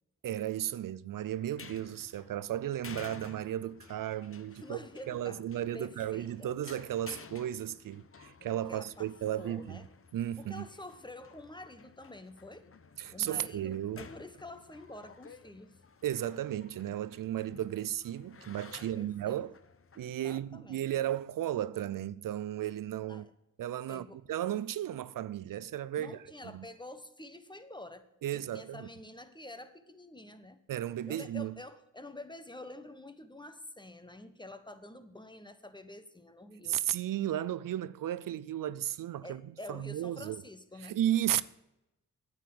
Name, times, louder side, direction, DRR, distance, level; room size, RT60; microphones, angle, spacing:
voice 1, 0.2-4.8 5.1-9.8 10.1-10.6 13.0-14.1 16.0-19.5 20.0-23.3 23.6-26.6 28.2-28.9 30.7-31.6 36.6-39.4 39.7-40.4 40.8-41.4, right 12 dB, 75° right, 0.5 m, -34 dB
sound 1, 1.4-20.1, left 5 dB, 40° left, 1.0 m, -54 dB
voice 2, 4.5-5.5 5.7-6.5 8.7-9.1 9.4-9.9 10.4-12.7 13.1-15.8 18.8-19.4 20.1-20.9 23.1-23.3 23.9-24.2 26.0-30.6 31.1-36.8 39.2-41.0, left 1 dB, 15° left, 1.3 m, -48 dB
9.2 x 9.0 x 7.7 m
cardioid pair, 55°, 33 cm